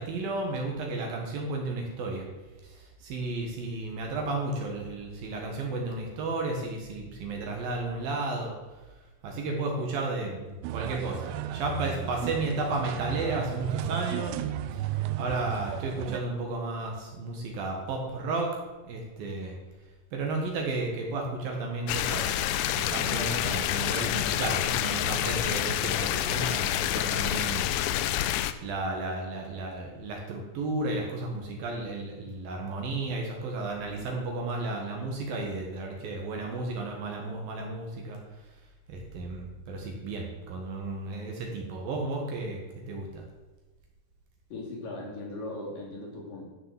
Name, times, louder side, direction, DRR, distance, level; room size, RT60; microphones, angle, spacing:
voice 1, 0.0-2.2 2.6-8.5 9.2-14.4 15.2-18.6 18.9-19.5 20.1-22.3 22.8-27.7 28.6-38.2 38.9-42.6 42.9-43.2, right 2 dB, 60° right, 1 dB, 3.0 m, -33 dB
sound 1, 10.6-16.2, right 11 dB, 80° right, 2.7 m, -34 dB
sound 2, 21.9-28.5, left 12 dB, 85° left, 2.7 m, -28 dB
voice 2, 44.5-46.5, left 2 dB, 55° left, -3 dB, 4.3 m, -38 dB
12.5 x 6.7 x 7.4 m, 1.2 s
omnidirectional pair, 5.1 m